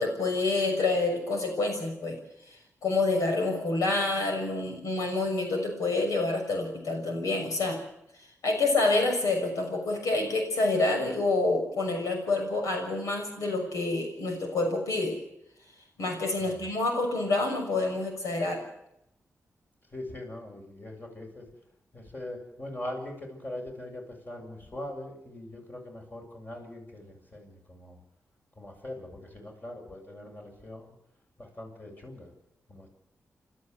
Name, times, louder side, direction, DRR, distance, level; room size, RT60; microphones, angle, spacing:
voice 1, 0.0-2.1 2.8-7.8 8.4-15.2 16.0-18.6, left 2 dB, 85° left, 3 dB, 6.5 m, -27 dB
voice 2, 19.9-21.5 21.9-28.0 28.6-30.9 31.4-32.3 32.7-32.9, left 1 dB, 35° left, 1 dB, 7.6 m, -41 dB
28.5 x 13.0 x 8.1 m, 0.79 s
cardioid pair, 75°, 6 cm